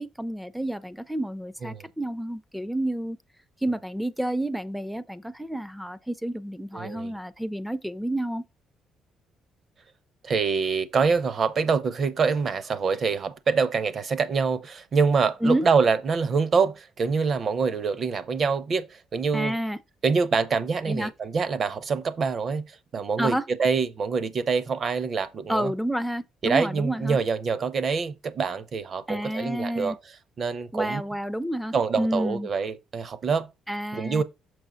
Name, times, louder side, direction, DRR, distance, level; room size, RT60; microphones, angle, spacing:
voice 1, 0.0-3.2 3.6-8.4 15.4-15.6 19.3-19.8 20.9-21.1 23.2-23.4 25.5-27.2 29.1-30.0 30.7-32.5 33.7-34.2, right 1 dB, ahead, 0.4 m, -29 dB
voice 2, 6.7-7.1 10.2-19.5 20.0-25.7 26.4-30.0 30.4-31.0 31.7-33.5 33.9-34.2, right 5 dB, 35° right, 0.7 m, -25 dB
6.2 x 5.4 x 3.9 m
cardioid pair, 150°, 0 cm